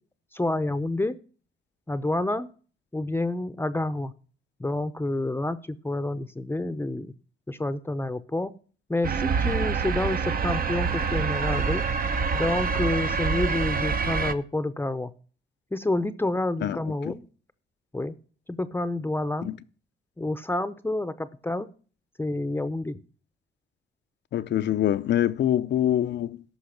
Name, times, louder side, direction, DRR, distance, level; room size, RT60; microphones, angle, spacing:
voice 1, 0.3-1.2 1.9-2.5 2.9-4.1 4.6-7.1 7.5-8.5 8.9-11.8 12.3-15.1 15.7-17.2 17.9-18.1 18.5-19.5 20.2-21.7 22.2-23.0, left 2 dB, 10° left, 0.7 m, -28 dB
sound 1, 9.0-14.3, right 5 dB, 50° right, 0.9 m, -26 dB
voice 2, 16.6-17.2 19.4-19.6 24.3-26.4, left 11 dB, 65° left, 0.6 m, -25 dB
14.0 x 5.7 x 5.8 m
cardioid pair, 90°, 20 cm